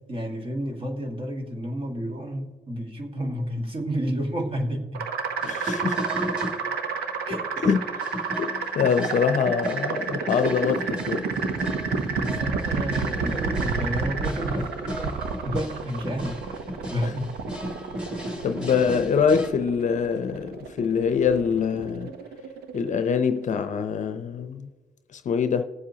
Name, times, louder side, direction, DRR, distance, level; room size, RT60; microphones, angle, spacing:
voice 1, 0.0-5.1 7.2-7.6 12.2-16.5 16.8-17.4, equal, 35° right, 1.8 m, -31 dB
sound 1, 4.9-23.7, right 5 dB, 85° right, 0.9 m, -30 dB
voice 2, 5.4-6.0 7.6-7.8 8.4-11.3 18.4-22.1 22.7-24.7 25.3-25.6, left 6 dB, 50° left, 0.7 m, -24 dB
sound 2, 5.4-6.6 7.0-7.1 7.3-19.5, equal, 5° right, 2.2 m, -35 dB
20.0 x 7.6 x 2.8 m
cardioid pair, 105°, 16 cm